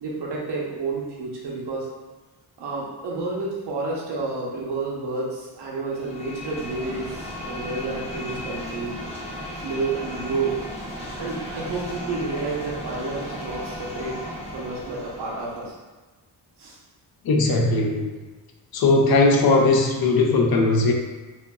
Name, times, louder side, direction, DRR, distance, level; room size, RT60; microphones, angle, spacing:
voice 1, 0.0-1.9 2.6-8.9 9.6-10.6 11.1-14.2 14.5-15.7 16.6-16.8, right 3 dB, 80° right, -3 dB, 0.8 m, -30 dB
sound 1, 5.9-15.7, equal, 15° left, 0.6 m, -35 dB
voice 2, 17.3-18.1 18.7-20.9, left 3 dB, 65° left, 1 dB, 0.5 m, -19 dB
2.9 x 2.5 x 2.2 m, 1.2 s
cardioid pair, 105°, 40 cm